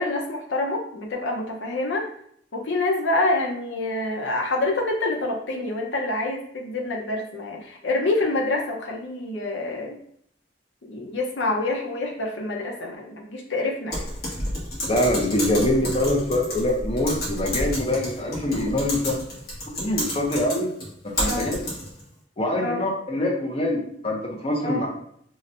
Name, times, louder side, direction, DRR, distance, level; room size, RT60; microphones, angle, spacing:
voice 1, 0.0-2.1 2.5-10.0 10.9-14.1 21.2-21.5 22.6-22.8 24.6-24.8, left 2 dB, 75° left, 0 dB, 0.7 m, -27 dB
Typing, 13.9-22.0, left 1 dB, 55° left, 1.3 m, -30 dB
voice 2, 14.9-19.2 19.8-20.7 21.2-21.5 22.4-24.9, left 1 dB, 30° left, -1 dB, 0.6 m, -24 dB
5.7 x 2.1 x 2.6 m, 0.67 s
head